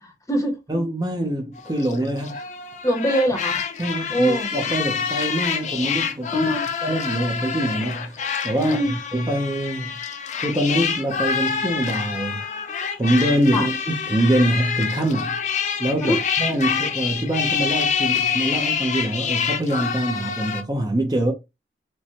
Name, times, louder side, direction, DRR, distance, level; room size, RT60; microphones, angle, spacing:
voice 1, 0.0-0.6 2.8-3.6 4.1-4.5 6.3-6.6 8.6-8.9 13.5-13.7 16.0-16.2, equal, 20° left, 0.8 m, -23 dB
voice 2, 0.7-2.4 3.8-6.5 6.8-8.8 9.1-10.0 10.4-12.4 13.0-15.4 15.8-21.3, right 1 dB, 20° right, 0.6 m, -24 dB
sound 1, 1.6-20.6, left 7 dB, 40° left, 0.4 m, -27 dB
4.4 x 2.2 x 2.8 m
head